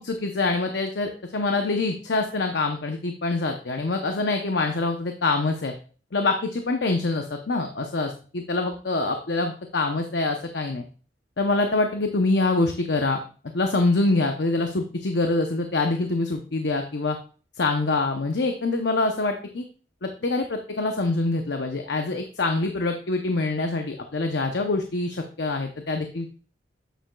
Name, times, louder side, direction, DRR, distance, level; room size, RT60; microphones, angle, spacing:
voice 1, 0.0-5.7 6.1-10.8 11.4-13.2 13.5-17.2 17.6-19.6 20.0-26.3, left 3 dB, 70° left, 5 dB, 0.7 m, -25 dB
9.0 x 7.1 x 2.3 m, 0.40 s
head